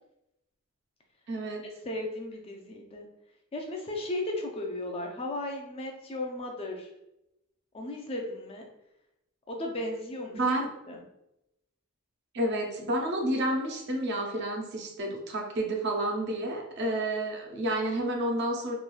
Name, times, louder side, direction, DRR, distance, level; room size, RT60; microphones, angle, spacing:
voice 1, 1.3-1.7 10.3-10.7 12.3-18.7, right 1 dB, 50° right, 1 dB, 0.5 m, -30 dB
voice 2, 1.8-3.1 3.5-6.9 7.7-8.7 9.5-10.4 10.9-11.0, left 1 dB, 25° left, 1 dB, 0.4 m, -35 dB
3.1 x 2.3 x 2.3 m, 0.86 s
head